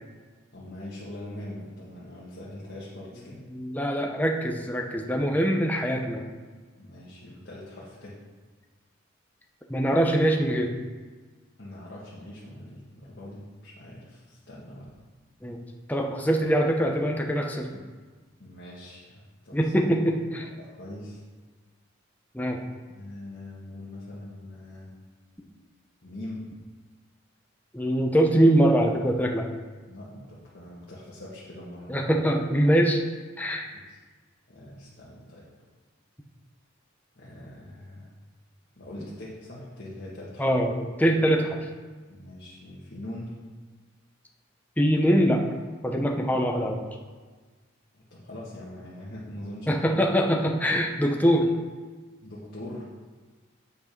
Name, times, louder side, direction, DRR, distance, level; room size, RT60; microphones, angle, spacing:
voice 1, 0.5-3.4 6.8-8.2 11.6-14.9 18.4-19.7 20.6-21.2 22.9-24.9 26.0-26.5 29.9-31.9 33.7-34.0 34.5-35.5 37.2-38.1 38.8-40.5 42.1-43.3 47.9-49.9 52.2-52.9, left 1 dB, 55° left, -7 dB, 1.6 m, -42 dB
voice 2, 3.5-6.3 9.7-10.7 15.4-15.6 15.9-17.8 19.5-20.5 22.3-22.6 27.7-29.5 31.9-33.0 33.4-33.7 40.4-41.6 44.8-45.4 45.8-46.8 49.7-51.5, equal, 10° left, 1 dB, 0.8 m, -23 dB
8.5 x 5.3 x 5.3 m, 1.4 s
head